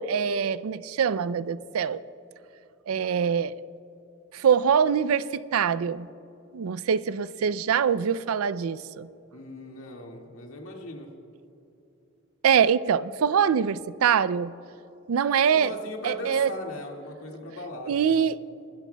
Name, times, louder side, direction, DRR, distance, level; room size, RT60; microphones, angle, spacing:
voice 1, 0.0-2.0 2.9-3.5 4.3-6.1 6.5-9.1 12.4-14.5 15.1-15.7 16.0-16.5 17.9-18.4, right 7 dB, 85° right, 0.4 m, -24 dB
voice 2, 9.3-11.1 15.3-18.2, left 1 dB, 80° left, 2.0 m, -39 dB
24.0 x 13.5 x 2.3 m
head